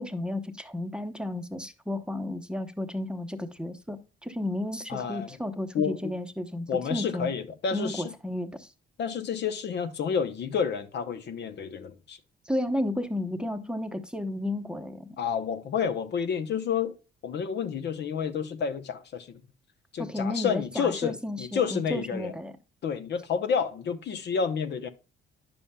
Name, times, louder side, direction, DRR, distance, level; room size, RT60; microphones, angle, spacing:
voice 1, 0.0-7.3 7.7-8.7 12.5-15.2 20.0-22.5, left 1 dB, 5° right, 0.8 m, -33 dB
voice 2, 4.9-5.4 5.7-6.1 6.7-8.1 9.0-12.2 15.2-17.0 17.2-19.4 19.9-22.3 22.8-24.9, left 7 dB, 60° left, 0.8 m, -30 dB
10.0 x 7.0 x 2.2 m
cardioid pair, 90°, 20 cm